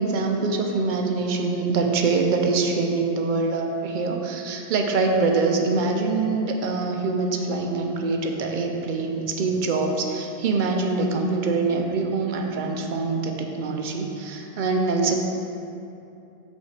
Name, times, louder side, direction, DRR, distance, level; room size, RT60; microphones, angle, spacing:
voice 1, 0.0-15.2, right 3 dB, 55° right, 2 dB, 0.6 m, -24 dB
5.7 x 3.3 x 5.7 m, 2.8 s
omnidirectional pair, 1.2 m